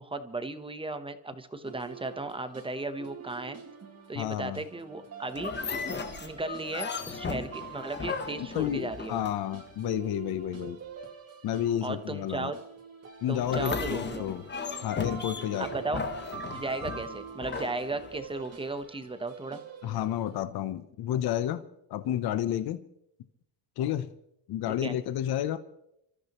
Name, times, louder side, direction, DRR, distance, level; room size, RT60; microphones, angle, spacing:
voice 1, 0.0-3.6 4.1-5.5 6.2-9.3 11.8-12.6 13.3-14.3 15.6-16.0 16.4-19.6 24.7-25.0, right 2 dB, 10° right, 10 dB, 0.9 m, -35 dB
sound 1, 1.6-20.4, right 7 dB, 35° right, 2.3 m, -46 dB
voice 2, 4.2-4.6 8.5-10.8 11.4-12.5 13.2-14.4 14.8-15.7 19.8-21.6 21.9-22.8 23.8-24.1 24.5-25.6, left 11 dB, 55° left, 12 dB, 0.8 m, -31 dB
sound 2, 5.4-9.7 13.4-18.5, left 5 dB, 25° left, 1.0 m, -36 dB
30.0 x 13.5 x 3.0 m, 0.80 s
cardioid pair, 130°, 45 cm